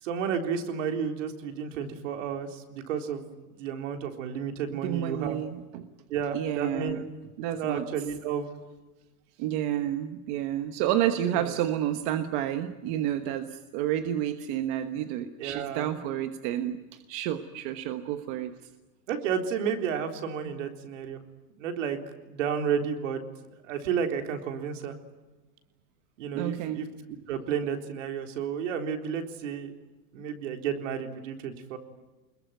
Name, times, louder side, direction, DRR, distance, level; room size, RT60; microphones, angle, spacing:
voice 1, 0.0-5.4 6.1-7.0 7.6-8.5 11.3-11.5 15.4-15.9 19.1-21.2 21.6-22.0 22.3-23.2 23.7-24.9 26.2-26.9 27.3-29.7 30.1-31.8, right 7 dB, 55° right, 5 dB, 3.9 m, -31 dB
voice 2, 4.7-5.9 6.3-7.0 7.4-7.9 9.4-18.5 26.3-26.8, right 11 dB, 35° right, 8 dB, 1.2 m, -30 dB
25.5 x 21.5 x 9.3 m, 1.2 s
supercardioid pair, 165°, 43 cm